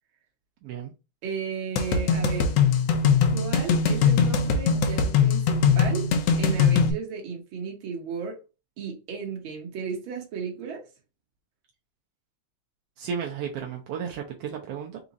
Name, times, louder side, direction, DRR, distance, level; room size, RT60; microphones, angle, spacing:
voice 1, 0.6-0.9 13.0-15.0, right 7 dB, 75° right, 1.4 m, -33 dB
voice 2, 1.2-2.6 3.3-6.0 6.4-8.4 8.8-10.8, right 5 dB, 50° right, 1.7 m, -34 dB
sound 1, 1.8-6.9, left 6 dB, 70° left, 1.5 m, -21 dB
5.0 x 2.4 x 4.0 m
omnidirectional pair, 3.4 m